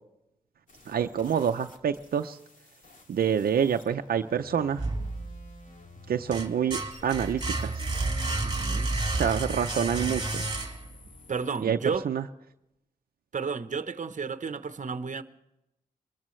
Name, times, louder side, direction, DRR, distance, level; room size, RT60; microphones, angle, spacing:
sound 1, 0.7-11.6, left 3 dB, 60° left, 2.4 m, -53 dB
voice 1, 0.9-2.4 3.1-4.8 6.1-7.8 9.1-10.5 11.6-11.8 12.0-12.2, right 8 dB, 85° right, 0.6 m, -27 dB
sound 2, 4.8-5.6 6.0-11.1, right 2 dB, 30° right, 2.4 m, -31 dB
voice 2, 8.4-8.9 11.3-12.1 13.3-15.2, right 5 dB, 55° right, 1.0 m, -32 dB
23.5 x 13.5 x 3.2 m
cardioid pair, 70°, 15 cm